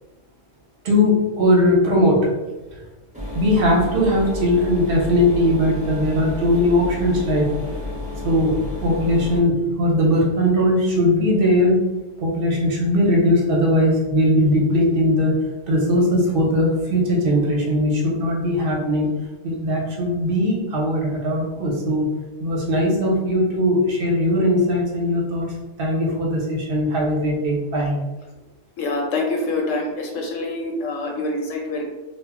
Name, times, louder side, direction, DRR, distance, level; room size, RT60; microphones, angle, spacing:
voice 1, 0.8-2.3 3.3-7.5 8.2-11.8 12.2-15.4 15.7-19.1 19.4-22.1 22.4-25.5 25.8-27.9, left 1 dB, 55° right, -2 dB, 0.8 m, -19 dB
sound 1, 3.1-9.4, left 2 dB, 10° right, 0.5 m, -31 dB
voice 2, 28.8-31.8, left 2 dB, 80° left, 0 dB, 1.0 m, -25 dB
2.2 x 2.0 x 3.5 m, 1.1 s
omnidirectional pair, 1.3 m